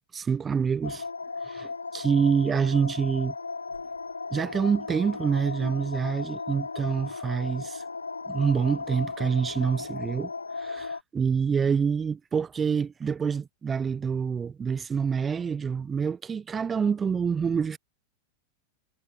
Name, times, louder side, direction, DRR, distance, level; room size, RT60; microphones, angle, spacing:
voice 1, 0.1-1.0 1.4-3.3 4.3-7.8 8.3-10.3 10.6-17.8, right 6 dB, 20° right, 3.2 m, -27 dB
sound 1, 0.8-11.0, left 4 dB, 80° left, 4.7 m, -36 dB
figure-of-eight pair, 90°, 0 cm